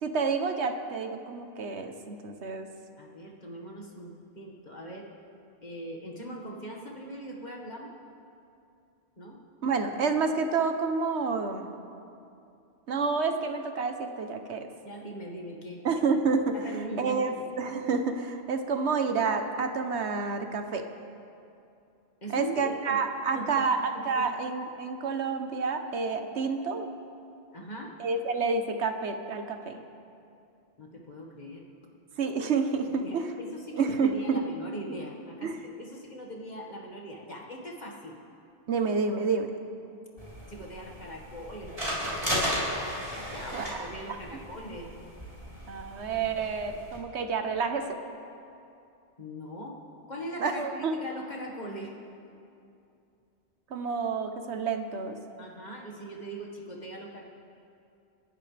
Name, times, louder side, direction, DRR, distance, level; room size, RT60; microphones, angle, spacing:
voice 1, 0.0-2.7 9.6-11.7 12.9-14.7 15.8-16.5 17.0-17.3 17.6-20.8 22.3-23.8 24.0-26.9 28.0-29.8 32.2-33.3 33.7-34.4 35.4-35.6 38.7-39.5 43.5-43.7 45.7-48.0 50.4-50.9 53.7-55.2, right 4 dB, 75° right, 6 dB, 1.2 m, -29 dB
voice 2, 3.0-5.1 5.6-7.9 9.2-9.4 14.8-15.8 16.5-17.5 22.2-23.0 23.3-23.7 24.2-24.3 27.5-28.0 30.8-31.6 33.0-38.2 40.5-42.1 43.3-44.9 49.2-49.8 50.1-51.9 55.4-57.2, equal, 40° left, -2 dB, 1.9 m, -41 dB
sound 1, 40.2-47.0, equal, 30° right, 4.0 m, -35 dB
30.0 x 11.0 x 3.4 m, 2.6 s
omnidirectional pair, 1.1 m